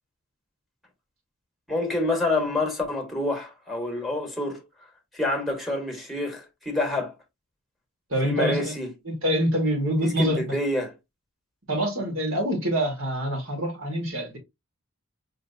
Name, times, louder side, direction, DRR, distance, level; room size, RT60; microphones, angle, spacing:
voice 1, 1.7-4.6 5.1-7.1 8.2-8.9 10.0-10.9, left 2 dB, ahead, 1.4 m, -27 dB
voice 2, 8.1-8.8 9.1-10.5 11.7-14.4, right 1 dB, 65° right, 2.0 m, -26 dB
5.1 x 3.0 x 2.6 m
head